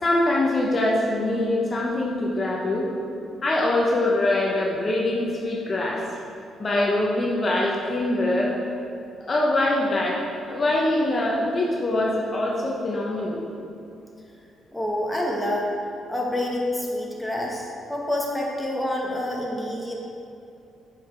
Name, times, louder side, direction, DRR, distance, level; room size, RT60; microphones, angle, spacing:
voice 1, 0.0-2.9 3.4-6.0 6.6-8.6 9.3-10.2 10.5-13.4, left 1 dB, 35° left, -3 dB, 0.8 m, -23 dB
voice 2, 14.7-15.7 16.1-19.9, left 1 dB, 5° left, -2 dB, 1.1 m, -27 dB
5.7 x 4.8 x 4.4 m, 2.7 s
cardioid pair, 90°, 0 cm